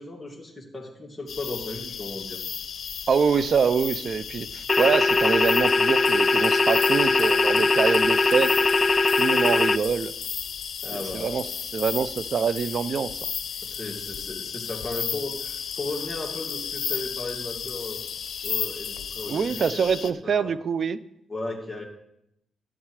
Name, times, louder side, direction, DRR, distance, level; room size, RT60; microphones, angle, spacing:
voice 1, 0.0-2.4 10.8-11.6 13.6-18.0 18.4-20.6 21.3-21.8, left 2 dB, 15° left, -3 dB, 2.5 m, -36 dB
sound 1, 1.3-20.1, left 7 dB, 70° left, 0.7 m, -34 dB
voice 2, 3.1-8.5 9.2-10.1 11.1-11.5 11.7-13.2 19.3-21.0, right 6 dB, 60° right, 16 dB, 0.5 m, -25 dB
sound 2, 4.7-9.8, left 3 dB, 40° left, 0.3 m, -21 dB
11.5 x 8.5 x 4.9 m, 0.80 s
cardioid pair, 60°, 0 cm